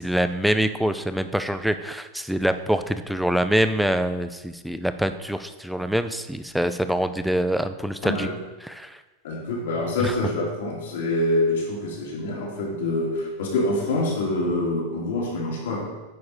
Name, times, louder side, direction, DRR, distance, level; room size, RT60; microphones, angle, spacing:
voice 1, 0.0-8.3 8.6-9.0 10.0-10.1, equal, ahead, 10 dB, 0.4 m, -25 dB
voice 2, 9.2-15.8, left 2 dB, 90° left, -4 dB, 2.8 m, -26 dB
9.4 x 4.1 x 4.9 m, 1.2 s
supercardioid pair, 145°, 0 cm